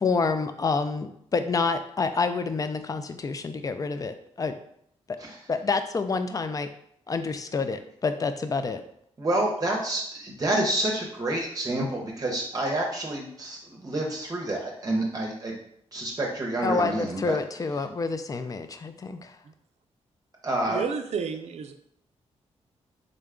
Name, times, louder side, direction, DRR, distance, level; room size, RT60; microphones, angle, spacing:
voice 1, 0.0-4.5 5.1-5.2 5.5-6.7 7.1-8.8 16.6-19.4, left 4 dB, 30° left, 9 dB, 0.4 m, -28 dB
voice 2, 9.2-15.6 15.9-17.4 20.4-20.8, right 1 dB, 30° right, -1 dB, 0.7 m, -28 dB
voice 3, 20.7-21.7, right 6 dB, 70° right, 7 dB, 0.4 m, -31 dB
3.8 x 2.2 x 3.6 m, 0.71 s
cardioid pair, 80°, 12 cm